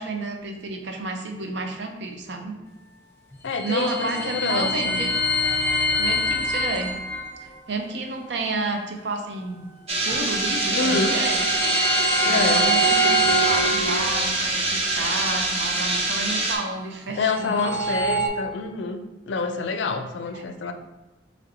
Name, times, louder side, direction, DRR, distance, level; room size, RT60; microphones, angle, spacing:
voice 1, 0.0-2.6 3.6-5.1 6.0-6.9 7.4-9.7 10.0-11.4 12.2-13.2 13.5-18.0 20.3-20.4, right 3 dB, 70° right, 3 dB, 0.6 m, -31 dB
sound 1, 3.3-7.3 10.1-14.5 17.1-18.3, equal, 15° left, 0.6 m, -24 dB
voice 2, 3.4-5.0 10.7-11.2 12.2-12.6 17.1-20.7, left 4 dB, 75° left, 7 dB, 0.4 m, -27 dB
sound 2, 9.9-16.6, right 2 dB, 35° right, 0.7 m, -25 dB
4.1 x 3.2 x 2.7 m, 1.1 s
head